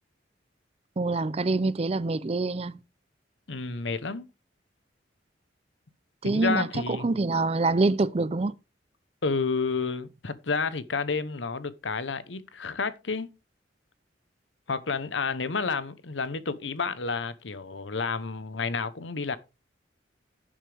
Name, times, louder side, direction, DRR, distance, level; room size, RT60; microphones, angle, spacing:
voice 1, 1.0-2.8 6.2-8.5, right 3 dB, 35° right, 0.5 m, -26 dB
voice 2, 3.5-4.3 6.2-7.2 9.2-13.3 14.7-19.4, left 4 dB, 85° left, 1.0 m, -30 dB
11.5 x 7.4 x 3.4 m
head